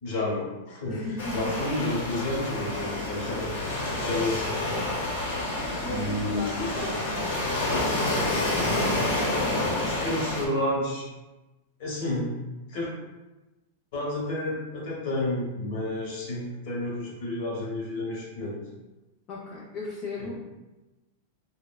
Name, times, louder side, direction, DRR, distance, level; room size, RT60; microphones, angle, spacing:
voice 1, 0.0-1.0 1.3-4.6 5.9-6.9 9.8-11.1 11.8-12.4 12.7-12.9 13.9-18.6 20.2-20.3, left 1 dB, 55° left, -4 dB, 1.0 m, -30 dB
voice 2, 0.9-1.5 5.8-7.3 19.3-20.3, left 2 dB, 30° left, -6 dB, 0.5 m, -36 dB
Waves surf, 1.2-10.4, left 2 dB, 85° left, 0.9 m, -28 dB
3.5 x 2.1 x 2.2 m, 1.1 s
supercardioid pair, 155°, 0 cm